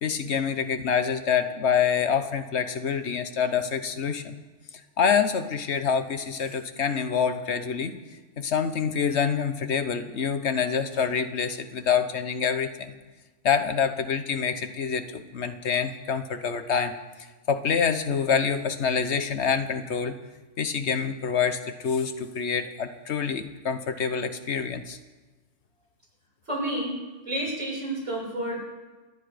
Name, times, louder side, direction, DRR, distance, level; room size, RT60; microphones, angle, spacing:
voice 1, 0.0-4.4 5.0-8.0 8.4-12.9 13.4-16.9 17.5-20.1 20.6-25.0, left 6 dB, 65° left, 9 dB, 1.3 m, -26 dB
voice 2, 26.5-26.9 27.2-28.7, right 1 dB, 85° right, -5 dB, 7.6 m, -30 dB
28.0 x 10.0 x 5.1 m, 1.3 s
omnidirectional pair, 1.2 m